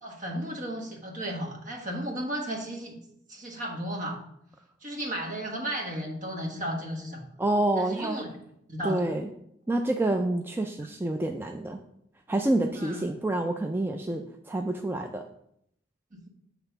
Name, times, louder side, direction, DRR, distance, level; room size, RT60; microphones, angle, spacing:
voice 1, 0.0-3.0 3.3-4.2 4.8-7.3 7.8-8.3 8.7-9.0 12.7-13.1 16.1-16.3, equal, 45° right, 1 dB, 1.4 m, -34 dB
voice 2, 7.4-8.2 8.8-9.3 9.7-11.8 12.3-15.2, right 1 dB, 10° right, 4 dB, 0.3 m, -28 dB
8.0 x 3.4 x 5.6 m, 0.75 s
head